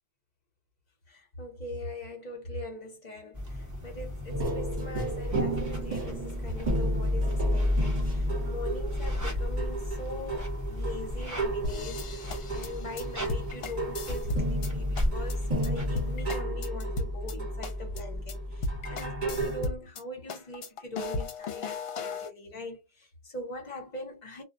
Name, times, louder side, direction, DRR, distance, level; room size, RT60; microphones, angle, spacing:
voice 1, 1.1-12.0 12.5-24.4, left 1 dB, 45° left, 1.0 m, -42 dB
sound 1, 3.3-16.3, equal, 20° right, 0.8 m, -38 dB
sound 2, 4.3-19.7, equal, 40° right, 1.1 m, -31 dB
sound 3, 11.6-14.7 15.0-15.3 15.6-15.7 16.0-17.3 17.6-18.0 18.3-18.4 18.6-20.0 20.3-22.3, left 3 dB, 70° left, 0.9 m, -35 dB
2.2 x 2.2 x 2.6 m
omnidirectional pair, 1.1 m